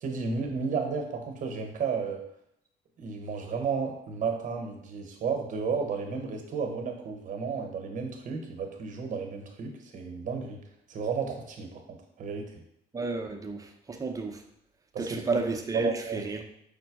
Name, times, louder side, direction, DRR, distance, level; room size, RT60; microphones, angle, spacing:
voice 1, 0.0-2.2 3.0-10.6 10.9-12.6 14.9-15.0 15.7-16.4, right 5 dB, 50° right, 3 dB, 0.9 m, -33 dB
voice 2, 12.9-14.4 15.0-16.4, right 3 dB, 20° right, 3 dB, 0.6 m, -32 dB
5.2 x 2.2 x 4.6 m, 0.75 s
cardioid pair, 110°, 17 cm